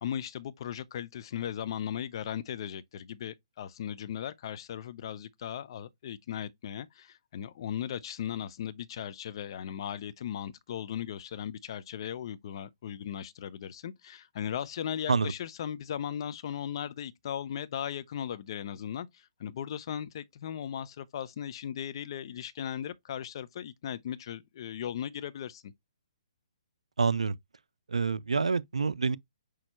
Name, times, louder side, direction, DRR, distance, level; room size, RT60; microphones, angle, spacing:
voice 1, 0.0-25.7, left 9 dB, 50° left, 0.5 m, -37 dB
voice 2, 27.0-27.4 27.9-29.2, right 4 dB, 85° right, 0.3 m, -27 dB
6.1 x 2.3 x 3.0 m
hypercardioid pair, 135°, 3 cm